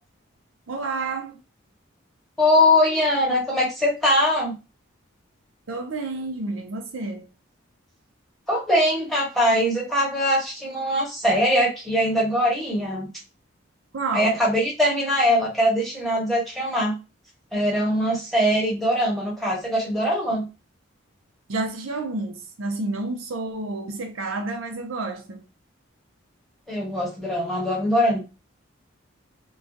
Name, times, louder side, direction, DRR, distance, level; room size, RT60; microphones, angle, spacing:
voice 1, 0.7-1.3 5.7-7.3 13.9-14.4 20.3-20.4 21.5-25.5, right 3 dB, 85° right, 0.5 m, -30 dB
voice 2, 2.4-4.5 8.5-13.1 14.1-17.0 17.5-20.4 26.7-28.2, equal, ahead, 1.0 m, -22 dB
2.3 x 2.2 x 2.6 m
head